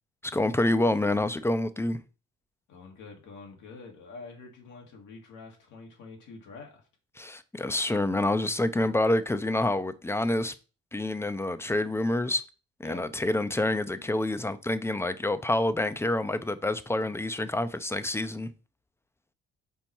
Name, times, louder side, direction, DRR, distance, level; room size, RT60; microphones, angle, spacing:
voice 1, 0.2-2.0 7.2-10.5 10.9-12.4 12.8-18.5, left 1 dB, 10° left, 0.5 m, -27 dB
voice 2, 2.7-6.8 12.8-13.0, left 4 dB, 85° left, 1.9 m, -46 dB
5.5 x 4.2 x 4.5 m
cardioid pair, 90°, 30 cm